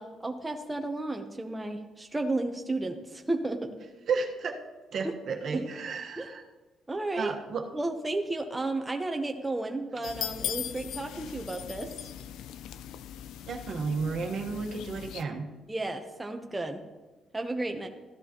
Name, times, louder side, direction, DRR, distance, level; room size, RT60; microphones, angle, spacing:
voice 1, 0.0-3.8 5.0-5.2 5.5-5.7 6.2-6.3 6.9-7.3 7.7-11.9 15.7-16.8 17.3-17.9, right 2 dB, 15° right, 4 dB, 0.9 m, -33 dB
voice 2, 4.1-4.6 4.9-6.4 7.1-7.7 13.5-15.5, right 4 dB, 60° right, 1 dB, 1.3 m, -32 dB
sound 1, 10.0-15.2, left 10 dB, 90° left, 0.4 m, -39 dB
14.0 x 10.5 x 3.0 m, 1.2 s
cardioid pair, 90°, 0 cm